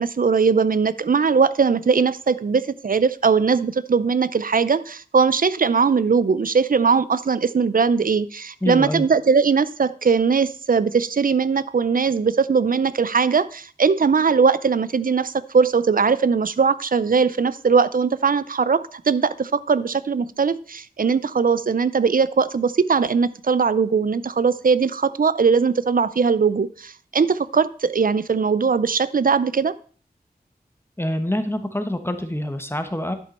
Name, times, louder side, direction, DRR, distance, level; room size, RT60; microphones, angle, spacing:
voice 1, 0.0-29.8, right 5 dB, 60° right, 16 dB, 0.5 m, -20 dB
voice 2, 8.6-9.0 31.0-33.1, left 1 dB, 15° left, 8 dB, 1.0 m, -26 dB
11.0 x 5.2 x 4.2 m, 0.42 s
wide cardioid pair, 45°, 16 cm